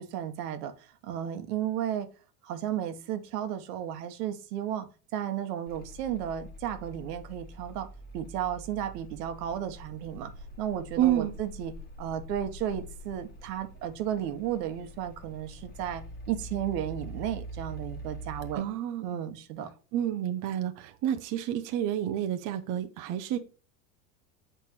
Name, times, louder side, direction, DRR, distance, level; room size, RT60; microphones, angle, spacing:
voice 1, 0.0-2.1 2.4-7.9 8.1-10.3 10.6-11.7 12.0-18.6 19.0-19.7, right 10 dB, 75° right, 1.2 m, -34 dB
sound 1, 5.7-18.6, right 1 dB, 20° left, 1.3 m, -44 dB
voice 2, 11.0-11.3 18.5-19.1 19.9-23.4, right 11 dB, 40° right, 0.7 m, -29 dB
7.9 x 4.5 x 3.0 m
supercardioid pair, 130°, 47 cm